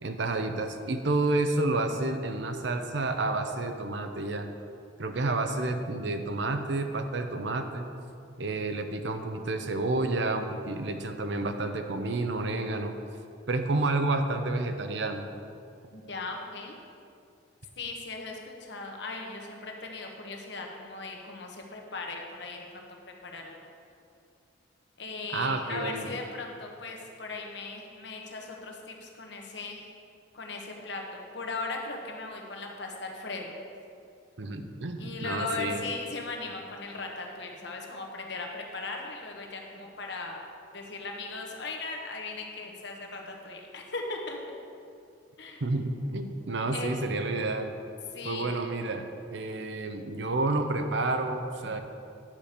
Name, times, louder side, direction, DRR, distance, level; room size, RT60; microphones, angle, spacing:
voice 1, 0.0-4.5 5.0-7.9 8.4-12.9 13.5-15.3 25.3-26.1 34.4-35.8 45.6-47.7 48.2-49.0 49.3-51.8, right 2 dB, 70° right, 6 dB, 0.7 m, -30 dB
voice 2, 15.9-16.8 17.8-22.9 23.2-23.6 25.0-29.9 30.3-33.6 35.0-40.5 40.7-44.4 45.4-45.6 46.7-47.0 48.1-48.5, left 3 dB, 65° left, 1 dB, 1.3 m, -38 dB
10.5 x 5.1 x 6.6 m, 2.5 s
head